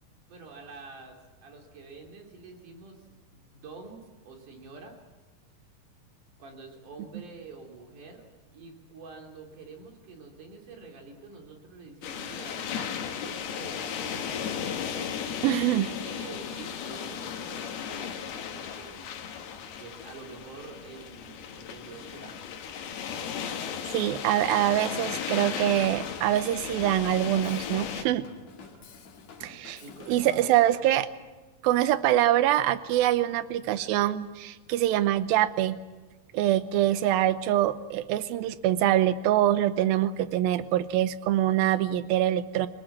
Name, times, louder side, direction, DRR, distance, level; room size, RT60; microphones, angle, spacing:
voice 1, 0.3-4.9 6.4-8.2 8.5-14.0 15.6-19.1 19.8-22.4 29.7-31.0, right 4 dB, 55° right, 1 dB, 4.5 m, -47 dB
sound 1, 12.0-28.0, left 8 dB, 80° left, 3.5 m, -35 dB
voice 2, 15.4-15.9 23.5-23.6 23.9-28.3 29.4-29.8 30.1-31.1 31.6-35.8 36.3-42.7, right 13 dB, 75° right, 13 dB, 2.6 m, -24 dB
Drum kit / Drum, 26.4-30.8, left 5 dB, 50° left, 2.8 m, -50 dB
26.0 x 19.0 x 7.4 m, 1.2 s
omnidirectional pair, 4.5 m